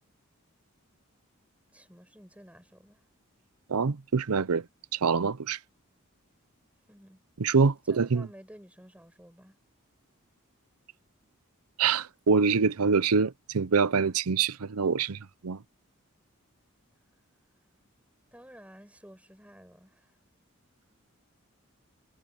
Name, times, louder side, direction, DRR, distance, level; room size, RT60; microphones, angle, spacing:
voice 1, 1.7-3.0 6.9-7.2 7.9-9.6 18.3-20.2, equal, 5° right, 6.8 m, -52 dB
voice 2, 3.7-4.6 4.9-5.6 7.4-8.3 11.8-15.6, right 5 dB, 90° right, 0.7 m, -25 dB
head